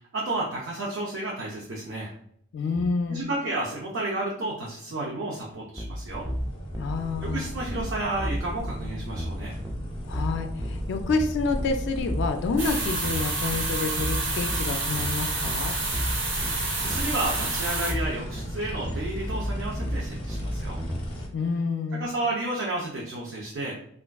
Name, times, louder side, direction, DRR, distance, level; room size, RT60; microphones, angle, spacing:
voice 1, 0.1-2.1 3.1-6.3 7.2-9.6 16.8-20.8 21.9-23.8, right 2 dB, 65° right, -3 dB, 0.5 m, -31 dB
voice 2, 2.5-3.3 6.8-7.5 10.1-15.8 21.3-22.1, left 4 dB, 60° left, 6 dB, 0.3 m, -28 dB
sound 1, 5.8-21.0, equal, 15° right, 0.4 m, -33 dB
sound 2, 6.1-21.3, equal, 25° left, 0.7 m, -35 dB
sound 3, 12.6-17.9, right 3 dB, 85° right, 0.9 m, -29 dB
3.4 x 2.4 x 2.2 m, 0.68 s
head